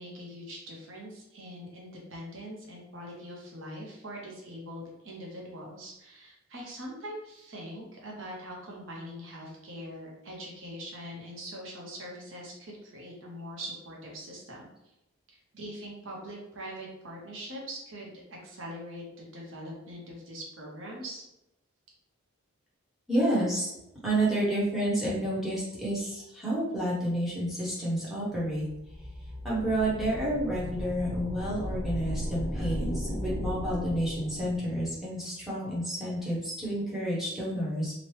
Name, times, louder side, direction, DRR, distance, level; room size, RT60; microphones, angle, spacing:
voice 1, 0.0-14.7 15.3-21.2, equal, 60° right, -2 dB, 0.7 m, -42 dB
voice 2, 23.1-23.7 24.0-28.6 29.4-37.9, right 1 dB, ahead, -8 dB, 0.9 m, -30 dB
sound 1, 28.6-34.9, left 1 dB, 25° right, 0.9 m, -36 dB
2.9 x 2.1 x 3.1 m, 0.89 s
head